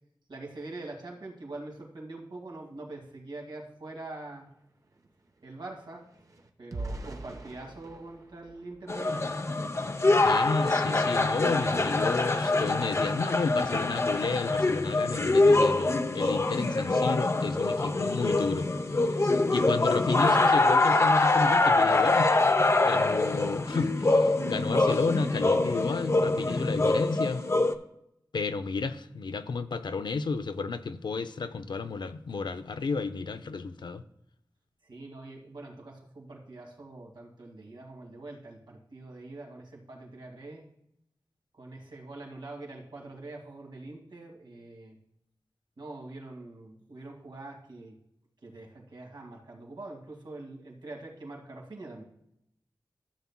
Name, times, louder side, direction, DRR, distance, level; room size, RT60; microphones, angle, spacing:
voice 1, 0.3-4.5 5.4-6.1 6.6-9.3 34.8-40.7 41.6-45.0 45.8-48.0 48.4-52.0, right 2 dB, 85° right, 2.0 m, -44 dB
sound 1, 3.7-3.8 4.1-9.6 10.1-10.3 10.7-10.9, right 2 dB, 50° right, 0.9 m, -44 dB
sound 2, 8.9-27.7, left 2 dB, 40° left, 0.6 m, -24 dB
voice 2, 10.2-18.7 19.5-22.4 22.8-27.4 28.3-34.0, left 4 dB, 85° left, 0.5 m, -32 dB
13.0 x 7.1 x 2.2 m
wide cardioid pair, 85°, 8 cm